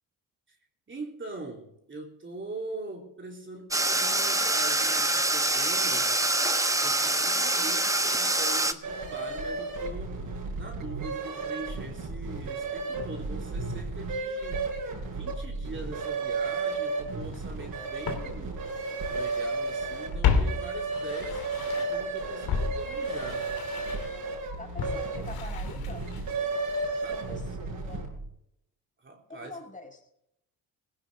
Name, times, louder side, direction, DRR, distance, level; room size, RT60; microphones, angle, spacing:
voice 1, 0.9-6.1 6.7-14.7 15.1-18.7 19.1-23.5 26.6-27.3 29.0-29.6, right 2 dB, 30° right, 0 dB, 3.4 m, -42 dB
sound 1, 3.7-8.7, right 2 dB, 10° right, 1.2 m, -25 dB
sound 2, 8.8-28.2, right 3 dB, 65° right, 7.0 m, -33 dB
Walk footsteps, 17.3-17.4 18.0-19.5 19.8-22.1 22.5-26.5 26.8-26.9, left 6 dB, 75° left, 2.9 m, -32 dB
voice 2, 24.6-26.1 27.1-28.1 29.3-30.0, left 2 dB, 20° left, 3 dB, 5.0 m, -44 dB
18.0 x 16.0 x 3.6 m, 0.78 s
cardioid pair, 75°, 37 cm